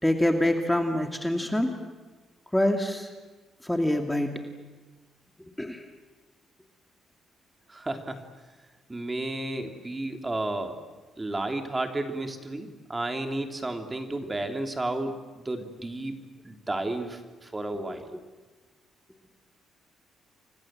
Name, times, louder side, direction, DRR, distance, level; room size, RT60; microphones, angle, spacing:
voice 1, 0.0-1.7 2.5-3.1 3.6-4.4 5.6-5.9 17.9-18.2, left 1 dB, 5° left, 4 dB, 2.5 m, -26 dB
voice 2, 7.7-8.2 8.9-10.8 11.2-18.1, right 2 dB, 20° right, 5 dB, 3.2 m, -32 dB
30.0 x 25.0 x 7.7 m, 1.3 s
cardioid pair, 90°, 0 cm